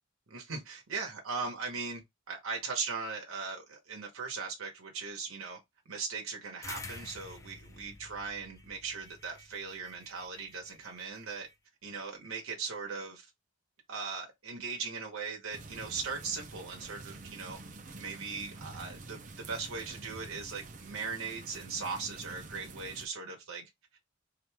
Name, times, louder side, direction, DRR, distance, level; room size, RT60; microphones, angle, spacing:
voice 1, 0.3-2.0 2.3-5.6 5.9-11.5 11.8-13.2 13.9-17.6 18.0-24.0, right 5 dB, 85° right, 1.0 m, -39 dB
sound 1, 6.6-11.5, left 3 dB, 15° left, 0.3 m, -49 dB
sound 2, 15.5-23.1, right 3 dB, 40° right, 0.5 m, -48 dB
2.9 x 2.5 x 3.3 m
head